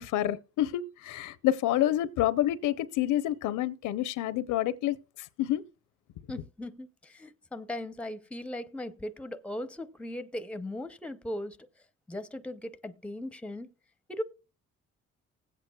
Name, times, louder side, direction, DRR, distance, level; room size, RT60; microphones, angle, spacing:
voice 1, 0.0-5.6, left 13 dB, 85° left, 0.6 m, -28 dB
voice 2, 6.3-11.7 12.1-13.7 14.1-14.2, left 1 dB, 5° left, 0.6 m, -38 dB
19.5 x 8.2 x 2.2 m
cardioid pair, 90°, 30 cm